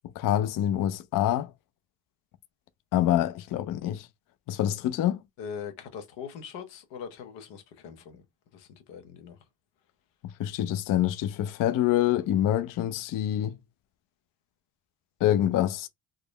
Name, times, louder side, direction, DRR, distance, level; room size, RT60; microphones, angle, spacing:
voice 1, 0.2-1.5 2.9-4.1 4.5-5.2 10.4-13.6 15.2-15.9, left 12 dB, 50° left, 0.5 m, -26 dB
voice 2, 5.4-8.2 8.5-9.4, left 7 dB, 90° left, 0.9 m, -41 dB
3.6 x 2.0 x 3.2 m
supercardioid pair, 80°, 43 cm